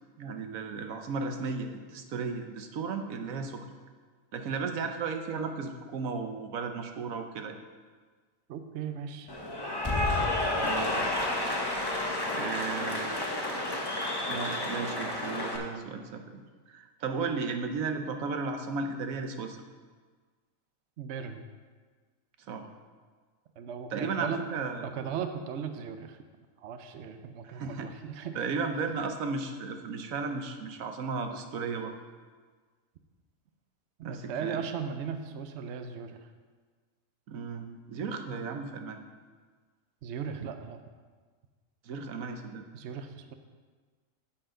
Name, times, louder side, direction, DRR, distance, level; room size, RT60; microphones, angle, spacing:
voice 1, 0.2-3.7 4.3-7.6 10.6-11.3 12.3-13.3 14.3-16.4 16.7-19.6 22.4-22.7 23.9-24.8 27.4-27.9 28.3-32.0 34.0-34.6 37.3-39.0 41.8-42.6, right 4 dB, 85° right, 5 dB, 1.2 m, -35 dB
voice 2, 8.5-9.3 21.0-21.4 23.6-24.4 24.8-26.2 26.6-28.4 34.0-36.2 40.0-40.8 42.7-43.3, right 7 dB, 65° right, 7 dB, 0.9 m, -37 dB
Cheering / Applause, 9.3-15.6, left 2 dB, 20° left, 0.9 m, -30 dB
10.0 x 7.9 x 3.8 m, 1.5 s
omnidirectional pair, 1.4 m